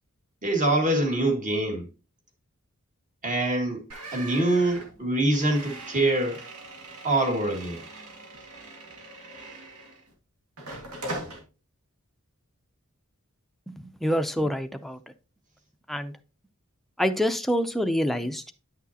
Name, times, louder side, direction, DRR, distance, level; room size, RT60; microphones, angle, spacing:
voice 1, 0.4-1.9 3.2-3.8 4.1-6.4 7.0-7.8, right 2 dB, 35° right, 1.9 m, -24 dB
sound 1, 3.9-10.1 10.6-11.4, right 2 dB, 85° right, 1.9 m, -41 dB
voice 2, 13.7-15.0 15.9-16.1 17.0-18.5, equal, ahead, 0.5 m, -26 dB
9.8 x 6.1 x 2.8 m
head